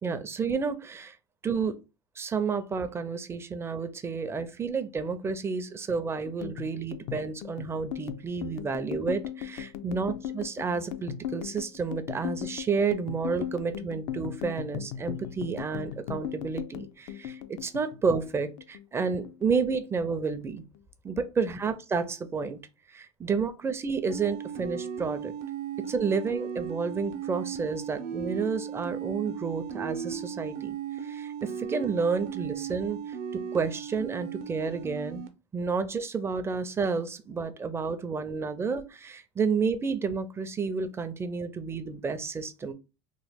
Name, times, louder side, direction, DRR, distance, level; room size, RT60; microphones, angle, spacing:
voice 1, 0.0-1.2 1.4-1.7 2.2-20.6 21.0-22.6 22.9-25.3 25.9-30.8 31.0-33.2 33.5-35.2 35.5-42.7, right 5 dB, 15° right, 0.4 m, -30 dB
sound 1, 6.2-18.8 19.1-20.1 20.4-20.8 21.1-21.8, left 10 dB, 65° left, 0.4 m, -38 dB
sound 2, 24.1-35.3, right 8 dB, 65° right, 0.7 m, -36 dB
3.0 x 2.1 x 3.4 m
supercardioid pair, 120°, 14 cm